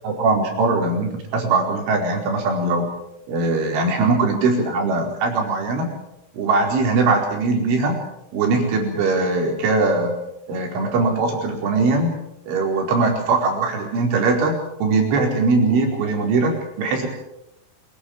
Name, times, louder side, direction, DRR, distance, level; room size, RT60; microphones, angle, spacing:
voice 1, 0.0-2.9 3.3-5.9 6.3-8.0 8.3-10.2 10.5-12.1 12.5-14.6 14.8-17.1, right 3 dB, 70° right, 2 dB, 7.0 m, -20 dB
26.0 x 18.5 x 7.4 m, 0.83 s
omnidirectional pair, 5.9 m